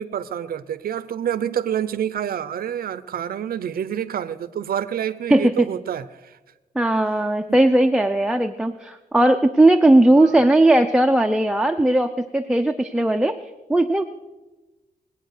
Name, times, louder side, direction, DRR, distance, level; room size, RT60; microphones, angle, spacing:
voice 1, 0.0-6.4 7.5-7.6 10.1-10.4, right 9 dB, 80° right, 0.7 m, -28 dB
voice 2, 5.3-5.7 6.7-13.4 13.7-14.0, right 1 dB, 5° right, 0.6 m, -17 dB
21.5 x 8.6 x 6.6 m
wide cardioid pair, 125°, 15 cm